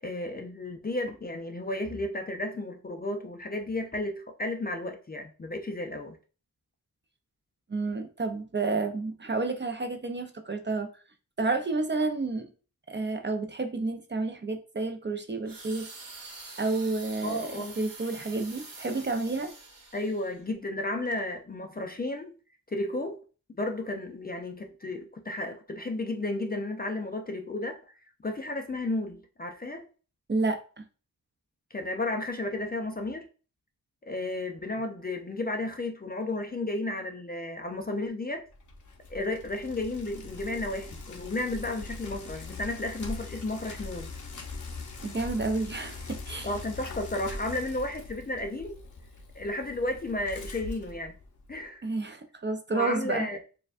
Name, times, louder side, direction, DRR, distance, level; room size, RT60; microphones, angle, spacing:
voice 1, 0.0-6.2 17.2-17.8 19.9-22.4 22.7-23.2 23.6-29.9 31.7-33.3 34.0-38.4 39.1-44.1 46.4-48.8 49.4-51.1 51.5-51.9 52.7-53.4, left 2 dB, 25° left, 0.4 m, -33 dB
voice 2, 7.7-10.9 11.4-12.5 12.9-15.9 16.6-19.5 30.3-30.8 45.0-46.5 51.8-53.3, right 3 dB, 30° right, 0.5 m, -30 dB
sound 1, 15.5-20.4 21.1-21.2, right 3 dB, 65° right, 1.1 m, -46 dB
Bicycle, 38.5-51.6, left 3 dB, 55° left, 0.8 m, -42 dB
6.5 x 2.2 x 2.4 m
wide cardioid pair, 110°, 36 cm